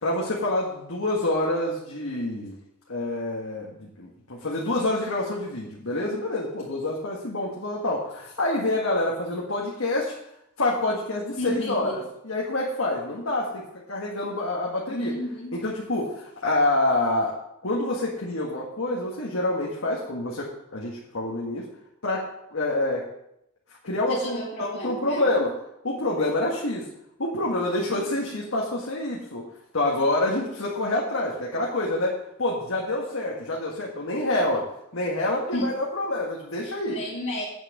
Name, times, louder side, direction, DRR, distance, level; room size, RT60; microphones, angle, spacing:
voice 1, 0.0-2.6 2.9-10.1 10.6-15.1 15.5-17.3 17.6-21.7 22.0-23.1 23.8-25.5 25.8-26.9 27.2-29.5 29.7-34.6 34.9-37.0, left 2 dB, 75° left, -3 dB, 1.8 m, -27 dB
voice 2, 11.4-11.9 14.9-15.5 24.1-25.3 27.8-28.0 35.5-35.7 36.6-37.4, equal, 60° left, -7 dB, 2.4 m, -32 dB
9.0 x 6.7 x 6.7 m, 0.79 s
head